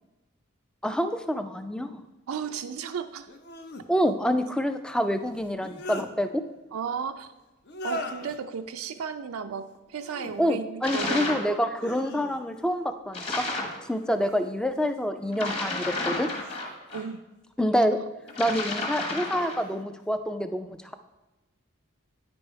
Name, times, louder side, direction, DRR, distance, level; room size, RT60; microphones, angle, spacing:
voice 1, 0.8-2.0 3.9-6.4 10.4-13.4 13.9-16.3 17.6-18.0 18.4-20.9, equal, 5° left, 8 dB, 0.3 m, -27 dB
sound 1, 0.9-1.0 3.3-3.9 5.4-6.1 7.6-8.4 9.9-10.3 10.8-11.4 11.8-12.7 13.9-14.5 15.1-17.1 18.2-18.7 19.3-19.8, left 1 dB, 50° left, 0.6 m, -41 dB
voice 2, 2.3-3.3 6.7-7.3 7.8-11.5 16.9-17.2 17.9-18.0, right 6 dB, 85° right, 7 dB, 0.4 m, -34 dB
sound 2, 10.8-11.5 13.1-13.8 15.3-17.0 18.3-19.7, left 2 dB, 25° left, 1.3 m, -31 dB
9.6 x 5.3 x 4.5 m, 1.1 s
head